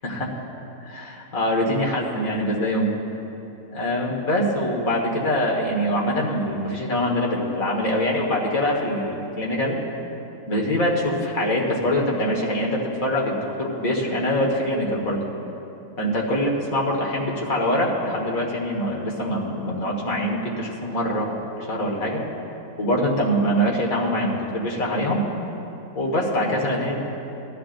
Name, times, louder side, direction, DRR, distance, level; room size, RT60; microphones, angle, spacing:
voice 1, 0.0-0.3 0.8-2.9 3.7-9.8 10.5-15.2 16.0-21.3 21.7-22.2 22.8-25.2 26.0-27.0, equal, 75° left, -2 dB, 2.2 m, -24 dB
20.5 x 12.5 x 2.6 m, 2.9 s
omnidirectional pair, 1.4 m